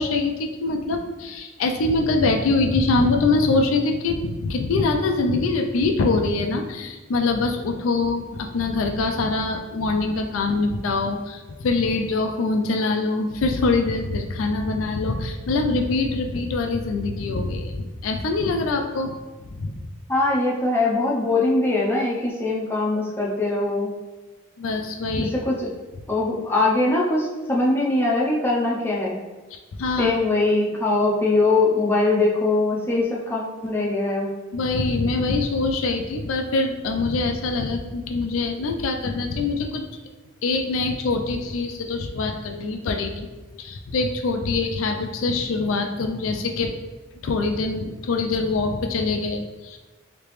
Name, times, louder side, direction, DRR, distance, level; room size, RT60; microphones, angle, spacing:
voice 1, 0.0-19.2 19.6-19.9 24.6-25.3 29.5-30.1 34.5-39.8 40.4-43.3 43.6-46.7 47.2-49.8, left 3 dB, 75° left, 4 dB, 0.4 m, -24 dB
voice 2, 20.1-23.9 25.2-25.7 26.1-29.2 30.0-34.3, left 2 dB, 10° left, -4 dB, 0.6 m, -22 dB
3.3 x 2.9 x 3.1 m, 1.2 s
head